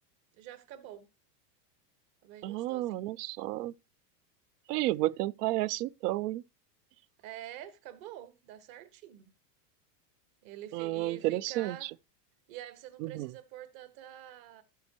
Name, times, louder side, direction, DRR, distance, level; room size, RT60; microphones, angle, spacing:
voice 1, 0.3-1.1 2.2-3.1 7.2-9.3 10.4-11.9 12.5-14.6, right 12 dB, 50° right, 1.5 m, -47 dB
voice 2, 2.4-3.7 4.7-6.4 10.7-11.8 13.0-13.3, right 17 dB, 75° right, 0.5 m, -31 dB
12.5 x 7.6 x 2.9 m
supercardioid pair, 140°, 49 cm